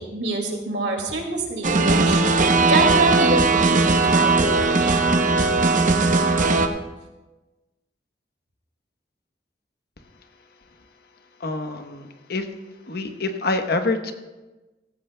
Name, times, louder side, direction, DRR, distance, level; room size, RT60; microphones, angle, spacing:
voice 1, 0.0-2.2 2.7-5.0, right 2 dB, 75° right, 2 dB, 2.2 m, -26 dB
sound 1, 1.6-6.7, right 3 dB, 50° right, 0.8 m, -18 dB
voice 2, 11.4-12.5 12.9-14.1, left 3 dB, 65° left, 7 dB, 1.0 m, -26 dB
16.0 x 14.5 x 2.2 m, 1.1 s
head